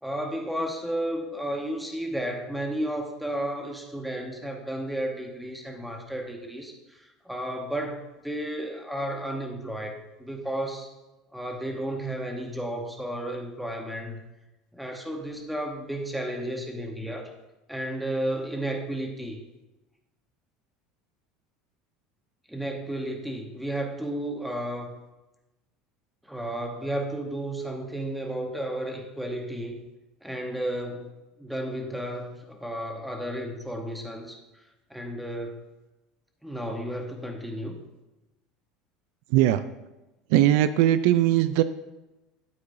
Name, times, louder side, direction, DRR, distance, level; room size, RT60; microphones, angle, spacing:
voice 1, 0.0-10.9 11.3-14.2 14.7-17.3 17.7-19.4 22.5-24.9 26.2-29.8 30.2-31.1 31.4-34.4 34.9-35.6 36.4-37.8, right 1 dB, ahead, 2 dB, 1.0 m, -33 dB
voice 2, 39.3-39.6 40.3-41.6, right 13 dB, 65° right, 12 dB, 0.4 m, -20 dB
12.0 x 8.6 x 2.7 m, 1.0 s
cardioid pair, 175°, 0 cm